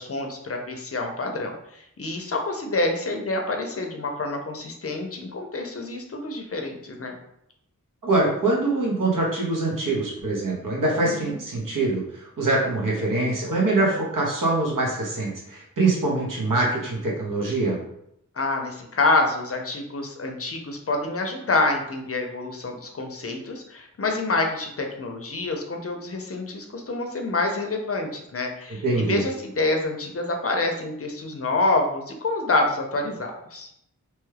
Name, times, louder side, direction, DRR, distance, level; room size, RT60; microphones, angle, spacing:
voice 1, 0.0-7.2 11.0-11.4 18.4-33.7, left 2 dB, 45° left, 3 dB, 0.5 m, -27 dB
voice 2, 8.0-17.8 28.8-29.2, right 2 dB, 80° right, -3 dB, 1.0 m, -24 dB
3.0 x 2.3 x 3.2 m, 0.76 s
wide cardioid pair, 85°, 32 cm